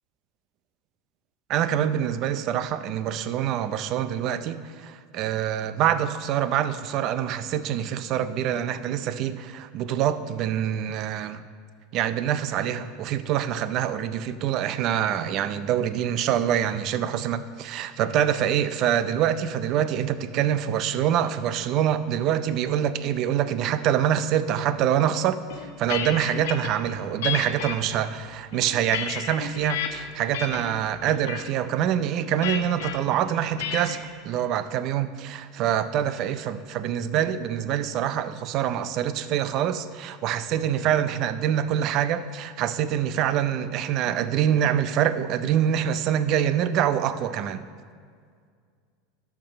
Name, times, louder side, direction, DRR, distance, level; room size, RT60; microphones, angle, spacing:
voice 1, 1.5-11.4 11.9-47.7, right 10 dB, 40° right, 13 dB, 0.4 m, -25 dB
sound 1, 25.5-26.7 27.2-27.8 28.4-29.9 30.3-30.7 31.1-31.5 32.4-33.0 33.6-34.0, left 9 dB, 90° left, 1.1 m, -31 dB
11.0 x 6.0 x 6.3 m, 2.1 s
supercardioid pair, 160°, 0 cm